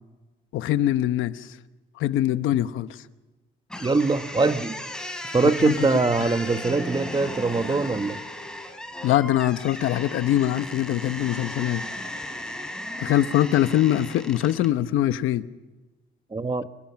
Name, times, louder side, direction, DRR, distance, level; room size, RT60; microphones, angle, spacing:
voice 1, 0.5-1.5 2.0-3.0 5.6-5.9 6.2-6.3 9.0-11.8 13.0-15.5, left 13 dB, 90° left, 1.0 m, -23 dB
sound 1, 3.7-14.7, left 1 dB, 5° left, 5.3 m, -36 dB
voice 2, 3.8-4.8 5.3-8.2 16.3-16.6, right 3 dB, 25° right, 1.5 m, -23 dB
29.0 x 20.5 x 5.9 m
cardioid pair, 90°, 20 cm